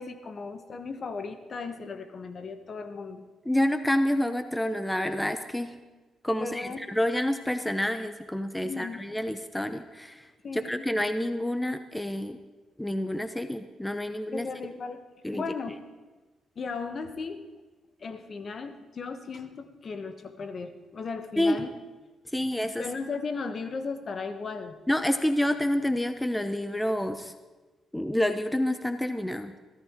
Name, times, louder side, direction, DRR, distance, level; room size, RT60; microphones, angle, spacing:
voice 1, 0.0-3.3 6.4-6.9 8.6-9.0 10.4-10.9 14.3-15.0 15.3-15.8 16.6-17.4 18.0-21.7 22.8-24.7, left 4 dB, 50° left, 8 dB, 1.3 m, -36 dB
voice 2, 3.5-5.8 6.2-10.3 10.5-12.4 12.8-14.5 15.2-15.4 21.4-21.6 22.3-22.9 24.9-27.3 27.9-29.6, left 1 dB, 5° left, 9 dB, 0.8 m, -28 dB
21.5 x 14.5 x 3.7 m, 1.2 s
cardioid pair, 75°, 0 cm